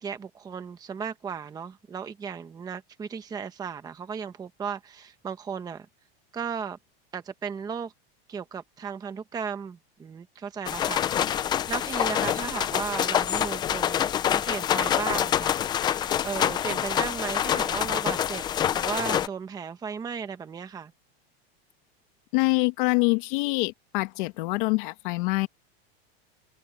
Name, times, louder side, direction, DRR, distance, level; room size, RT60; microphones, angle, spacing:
voice 1, 0.0-5.9 6.3-6.8 7.1-7.9 8.3-15.5 15.9-18.4 18.7-20.9, right 6 dB, 15° right, 0.9 m, -35 dB
sound 1, 10.7-19.3, left 10 dB, 15° left, 0.4 m, -26 dB
voice 2, 22.3-25.5, left 26 dB, 55° left, 2.0 m, -25 dB
supercardioid pair, 165°, 30 cm